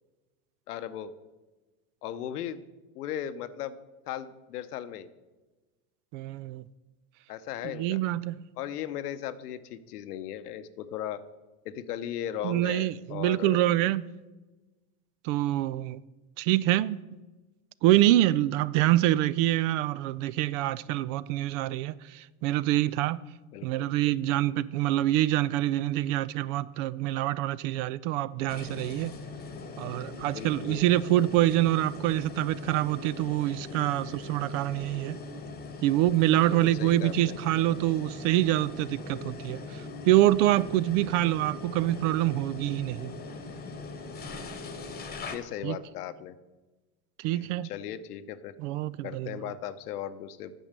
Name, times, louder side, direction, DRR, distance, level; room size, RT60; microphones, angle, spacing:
voice 1, 0.7-1.1 2.0-2.6 2.9-3.8 4.1-5.1 7.3-8.0 8.6-11.2 11.6-13.6 23.5-23.9 30.3-30.8 36.5-37.4 45.3-46.4 47.3-48.5 49.0-50.5, left 10 dB, 85° left, 0.9 m, -37 dB
voice 2, 6.1-6.6 7.6-8.4 12.4-14.0 15.2-16.0 16.4-17.0 17.8-23.2 23.6-29.1 29.8-35.2 35.8-43.1 45.6-45.8 47.2-47.7 48.6-49.4, right 15 dB, 55° right, 0.5 m, -26 dB
sound 1, 28.5-45.4, left 3 dB, 20° left, 1.2 m, -41 dB
9.1 x 7.1 x 6.6 m
supercardioid pair, 110°, 45 cm